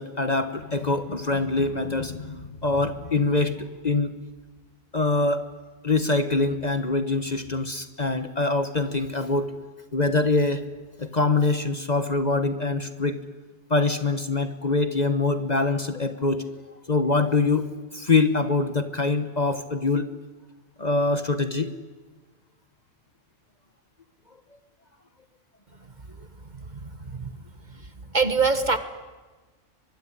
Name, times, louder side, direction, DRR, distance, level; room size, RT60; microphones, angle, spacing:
voice 1, 0.0-4.1 4.9-5.4 5.8-9.5 9.9-10.6 11.0-13.2 13.7-16.4 16.9-20.1 20.8-21.7, left 3 dB, 35° left, 11 dB, 1.3 m, -24 dB
voice 2, 26.5-27.3 28.1-28.8, right 4 dB, 35° right, 11 dB, 1.5 m, -24 dB
23.5 x 23.0 x 10.0 m, 1.3 s
omnidirectional pair, 1.4 m